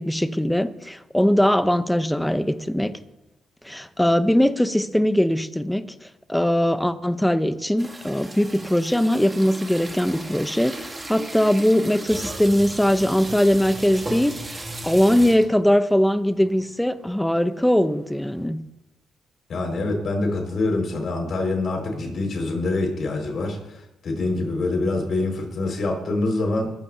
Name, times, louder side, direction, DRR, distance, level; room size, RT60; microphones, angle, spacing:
voice 1, 0.0-2.9 3.6-5.8 6.3-14.4 14.8-18.6, equal, 5° left, 11 dB, 0.8 m, -21 dB
sound 1, 7.8-15.6 16.2-16.3 16.5-16.7 17.1-18.4, right 2 dB, 20° right, 2.6 m, -36 dB
voice 2, 19.5-26.7, left 2 dB, 55° left, 1 dB, 5.4 m, -25 dB
20.5 x 15.5 x 2.9 m, 0.91 s
cardioid pair, 90°, 0 cm